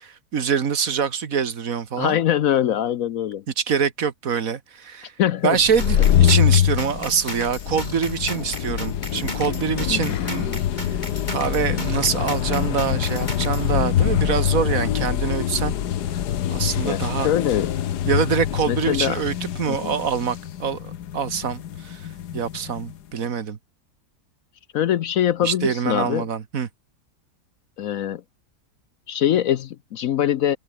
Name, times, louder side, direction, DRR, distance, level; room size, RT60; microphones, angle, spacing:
voice 1, 0.3-2.2 3.6-5.1 5.4-11.0 11.3-15.7 16.5-17.3 18.1-22.1 22.3-23.6 25.4-26.7, right 7 dB, 60° right, 1.8 m, -25 dB
voice 2, 2.0-3.4 5.2-5.6 9.9-10.2 16.8-17.7 18.7-19.2 19.7-19.9 24.7-26.3 27.8-28.2 29.1-30.6, left 11 dB, 65° left, 1.0 m, -23 dB
sound 1, 5.6-23.0, left 10 dB, 80° left, 1.6 m, -24 dB
sound 2, 5.8-13.7, left 1 dB, 25° left, 7.1 m, -35 dB
omnidirectional pair, 1.7 m